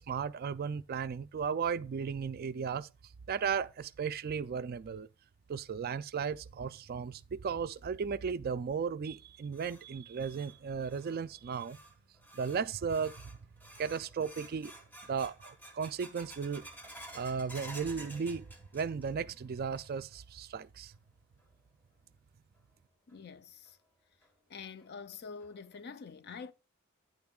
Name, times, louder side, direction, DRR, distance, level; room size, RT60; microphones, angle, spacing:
voice 1, 0.0-2.9 3.3-5.1 5.5-11.8 12.3-13.1 13.8-14.7 15.1-16.7 17.1-20.9, right 6 dB, 45° right, 0.3 m, -35 dB
sound 1, 9.1-19.3 19.5-20.2 20.5-20.6 21.4-21.5 23.1-23.2 23.7-23.8 24.2-24.3 24.8-24.9 25.4-25.8, right 1 dB, 10° left, 1.4 m, -52 dB
voice 2, 23.1-23.8 24.5-26.5, left 5 dB, 50° left, 0.5 m, -46 dB
10.5 x 9.5 x 2.3 m
head